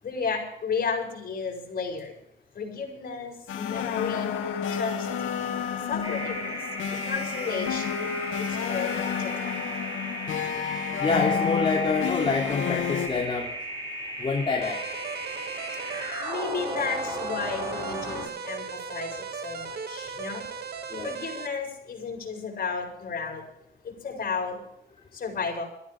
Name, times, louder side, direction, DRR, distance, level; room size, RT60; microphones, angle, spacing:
voice 1, 0.0-2.1 2.6-4.3 4.7-5.1 5.9-6.6 6.9-8.2 8.6-9.6 16.2-18.6 18.9-20.4 21.0-23.4 23.8-24.6 25.1-25.6, left 5 dB, 50° left, 1 dB, 7.8 m, -33 dB
sound 1, 3.5-13.1, left 8 dB, 80° left, 2.5 m, -30 dB
sound 2, 6.0-18.3, equal, 20° right, 7.7 m, -36 dB
voice 2, 11.0-13.5 14.2-14.8 20.9-21.2, left 4 dB, 30° left, -3 dB, 3.5 m, -27 dB
sound 3, 14.6-21.5, right 6 dB, 55° right, 2.4 m, -37 dB
22.0 x 15.0 x 3.7 m, 0.76 s
cardioid pair, 90°, 20 cm